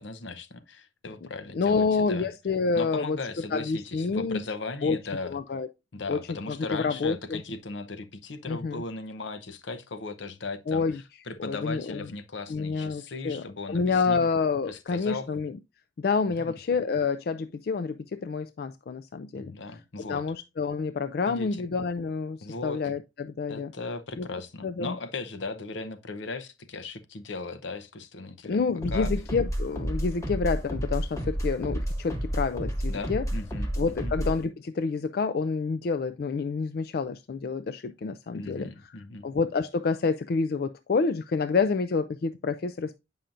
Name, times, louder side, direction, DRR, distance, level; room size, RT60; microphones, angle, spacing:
voice 1, 0.0-2.3 2.7-5.4 5.9-10.9 11.3-14.3 14.7-15.3 16.3-16.6 19.3-20.2 21.3-21.6 22.4-22.8 23.5-28.6 28.9-29.1 32.9-34.1 38.3-39.3, left 3 dB, 80° left, 0.8 m, -37 dB
voice 2, 1.5-3.2 3.5-4.4 4.8-5.0 5.3-5.7 6.1-6.2 6.5-7.4 8.5-8.8 10.7-11.0 11.4-12.0 12.5-15.6 16.0-19.5 20.0-23.7 24.2-24.3 24.6-24.9 28.4-33.2 33.8-38.7 39.2-43.0, left 4 dB, 55° left, 0.3 m, -28 dB
sound 1, 28.8-34.4, equal, 15° left, 1.2 m, -31 dB
8.9 x 5.5 x 2.5 m
head